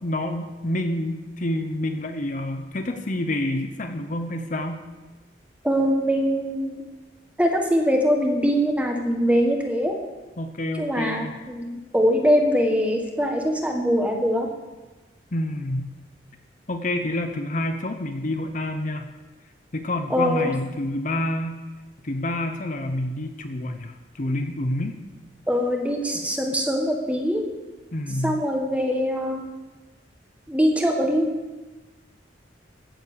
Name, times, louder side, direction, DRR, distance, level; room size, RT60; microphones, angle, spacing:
voice 1, 0.0-4.8 10.4-11.3 15.3-15.9 16.7-19.1 19.7-21.5 22.0-25.0 27.9-28.4, left 1 dB, 45° left, 6 dB, 0.8 m, -28 dB
voice 2, 5.6-6.8 7.4-9.9 10.8-14.5 20.1-20.5 25.5-27.4 28.2-29.4 30.5-31.3, equal, 5° right, 2 dB, 1.5 m, -22 dB
15.5 x 7.3 x 6.9 m, 1.2 s
head